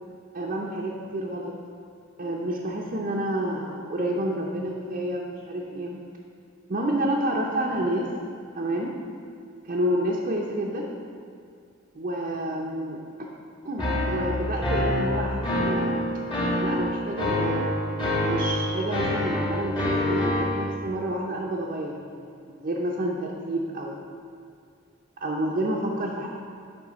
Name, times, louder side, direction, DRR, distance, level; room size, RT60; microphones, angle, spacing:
voice 1, 0.3-1.6 2.2-6.0 6.7-8.1 8.5-8.9 9.6-10.9 11.9-13.3 13.6-16.0 16.6-24.1 25.2-26.3, right 1 dB, 40° right, -2 dB, 0.6 m, -29 dB
sound 1, 13.8-20.6, left 1 dB, 25° left, 1.3 m, -26 dB
9.0 x 3.3 x 6.2 m, 2.4 s
head